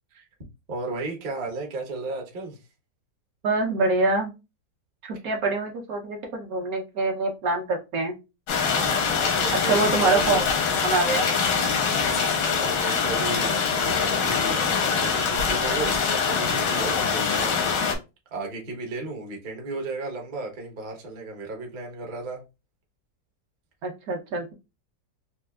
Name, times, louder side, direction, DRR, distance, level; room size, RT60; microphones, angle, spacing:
voice 1, 0.7-2.6 8.6-10.5 11.8-17.7 18.3-22.4, right 3 dB, 45° right, 0.6 m, -35 dB
voice 2, 3.4-4.3 5.0-8.2 9.6-10.4 10.8-11.3 23.8-24.5, right 3 dB, 65° right, 1.0 m, -25 dB
sound 1, 8.5-18.0, left 5 dB, 85° left, 1.4 m, -24 dB
4.2 x 2.3 x 2.3 m
omnidirectional pair, 1.9 m